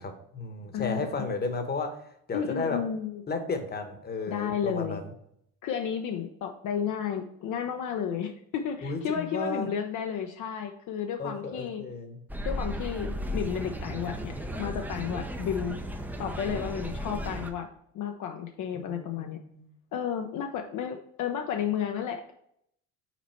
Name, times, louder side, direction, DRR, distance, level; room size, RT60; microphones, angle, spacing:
voice 1, 0.0-1.9 2.3-2.8 3.3-5.1 8.8-9.7 11.2-12.2 18.7-19.7, left 3 dB, 25° left, 6 dB, 1.1 m, -33 dB
voice 2, 0.7-1.1 2.3-3.2 4.3-5.0 5.6-11.8 12.4-15.8 16.2-17.7 17.9-19.4 19.9-22.3, left 8 dB, 55° left, 4 dB, 0.7 m, -32 dB
sound 1, 12.3-17.5, equal, 5° right, 0.6 m, -35 dB
6.1 x 4.0 x 4.4 m, 0.72 s
cardioid pair, 105°, 35 cm